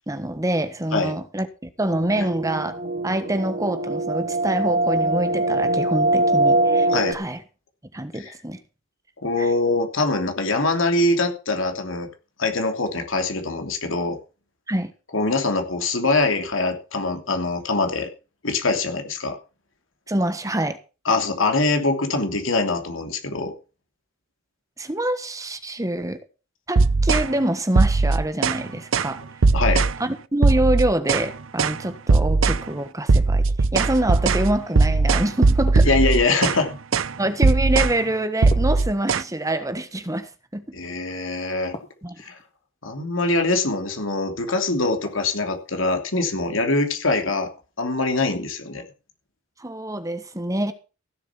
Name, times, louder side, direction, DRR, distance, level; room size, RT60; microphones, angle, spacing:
voice 1, 0.1-7.4 7.9-8.6 9.4-9.5 14.7-14.9 20.1-20.8 24.8-26.2 26.7-29.2 30.0-33.5 33.7-35.9 36.2-36.4 37.2-40.8 42.0-42.2 49.6-50.7, right 1 dB, 15° right, 1.3 m, -26 dB
sound 1, 1.9-7.1, right 2 dB, 45° right, 1.1 m, -22 dB
voice 2, 9.2-12.1 12.4-14.2 15.1-18.1 18.4-19.4 21.0-23.5 29.5-29.8 35.8-36.8 40.7-41.7 42.2-42.4 42.8-47.5 47.8-48.8, left 3 dB, 80° left, 2.9 m, -23 dB
sound 2, 26.8-27.3 27.8-28.6 28.9-29.1 29.4-30.0 30.4-31.3 31.6-31.8 32.1-32.6 33.1-36.6 36.9-37.1 37.4-38.0 38.4-39.2, right 3 dB, 80° right, 0.7 m, -19 dB
sound 3, 35.7-36.4 38.5-39.5 41.7-42.5 45.0-45.7, left 1 dB, 30° left, 2.5 m, -40 dB
16.0 x 7.4 x 5.9 m
head